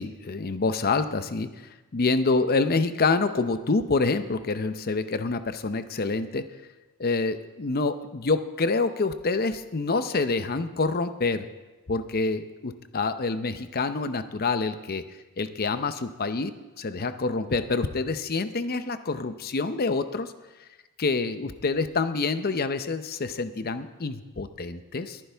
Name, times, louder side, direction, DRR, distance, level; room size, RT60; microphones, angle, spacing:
voice 1, 0.0-6.5 7.0-11.4 11.9-15.0 15.4-16.5 16.8-20.3 21.0-25.2, left 3 dB, 45° left, 11 dB, 0.7 m, -27 dB
21.5 x 10.0 x 3.5 m, 1.1 s
head